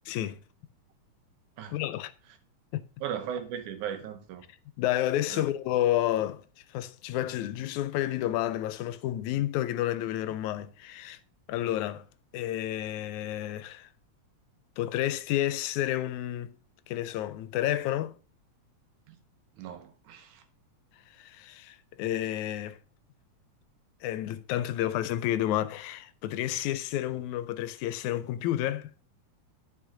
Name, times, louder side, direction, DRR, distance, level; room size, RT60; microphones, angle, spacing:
voice 1, 0.1-0.4 1.7-2.1 2.7-2.9 4.8-6.4 6.7-11.2 11.5-12.0 12.3-13.9 14.8-16.6 16.9-18.2 21.2-22.8 24.0-28.9, left 13 dB, 80° left, 1.9 m, -30 dB
voice 2, 3.0-4.5 5.3-5.5 19.1-19.2 19.6-20.4, right 9 dB, 90° right, 2.5 m, -37 dB
11.5 x 5.5 x 3.7 m
omnidirectional pair, 3.4 m